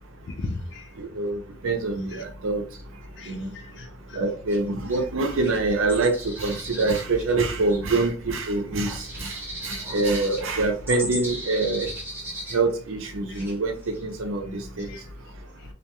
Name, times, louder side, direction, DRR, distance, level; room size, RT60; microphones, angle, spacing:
voice 1, 0.3-0.9 2.1-2.2 3.2-4.2 12.5-12.6 13.3-13.5 14.9-15.0, left 2 dB, 60° left, 4 dB, 0.4 m, -37 dB
voice 2, 1.0-2.6 3.3-3.5 4.1-9.4 9.6-11.9 12.5-13.7 14.0-14.9, right 3 dB, 85° right, 5 dB, 0.6 m, -25 dB
sound 1, 4.5-4.6 4.9-5.0 5.3-8.0 8.3-8.4 8.7-13.1 13.3-13.5 13.8-14.3, right 1 dB, 10° right, 0.5 m, -37 dB
2.4 x 2.2 x 2.9 m, 0.38 s
head